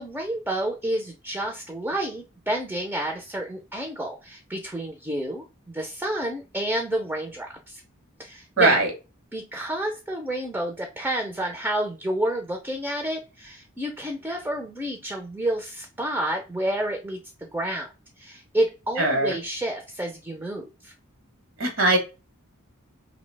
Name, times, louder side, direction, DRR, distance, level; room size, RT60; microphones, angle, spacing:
voice 1, 0.0-7.8 8.2-8.8 9.3-17.9 18.2-20.9, right 1 dB, 10° right, 2 dB, 0.3 m, -29 dB
voice 2, 8.6-8.9 19.0-19.4 21.6-22.0, right 2 dB, 70° right, 2 dB, 0.8 m, -20 dB
2.7 x 2.0 x 3.1 m, 0.29 s
head